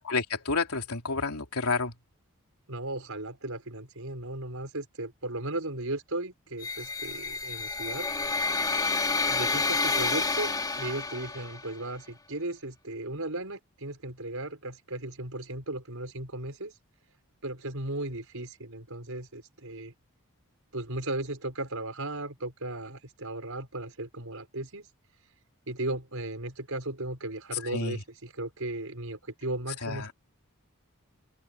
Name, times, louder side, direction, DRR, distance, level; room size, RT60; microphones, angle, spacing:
voice 1, 0.0-1.9 27.7-28.0 29.8-30.1, left 4 dB, 85° left, 3.3 m, -30 dB
voice 2, 2.7-8.1 9.3-16.7 17.4-19.9 20.7-24.9 25.7-30.1, right 2 dB, 70° right, 5.7 m, -36 dB
sound 1, 6.6-11.7, left 3 dB, 15° left, 3.4 m, -29 dB
open air
head